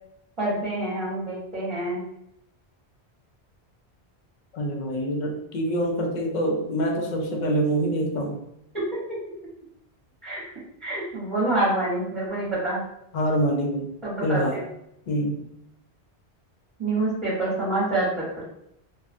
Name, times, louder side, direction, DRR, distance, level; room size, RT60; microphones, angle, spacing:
voice 1, 0.4-2.0 10.2-10.4 10.8-12.8 14.0-14.6 16.8-18.1 18.3-18.4, right 2 dB, 30° right, -10 dB, 0.9 m, -26 dB
voice 2, 4.5-8.4 13.1-13.9 14.2-14.6 15.1-15.4, right 1 dB, 55° left, 2 dB, 0.5 m, -25 dB
2.6 x 2.2 x 2.5 m, 0.79 s
omnidirectional pair, 1.1 m